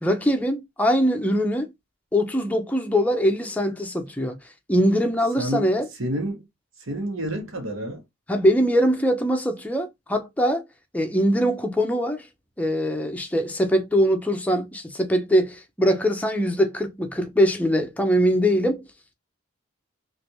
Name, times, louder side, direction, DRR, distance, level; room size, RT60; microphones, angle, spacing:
voice 1, 0.0-1.7 2.1-4.4 4.7-5.9 8.3-10.6 10.9-12.2 12.6-18.8, equal, 5° left, 0.5 m, -22 dB
voice 2, 5.4-5.7 6.0-6.4 6.9-8.0, right 1 dB, 80° right, 1.1 m, -29 dB
3.2 x 2.5 x 2.8 m
head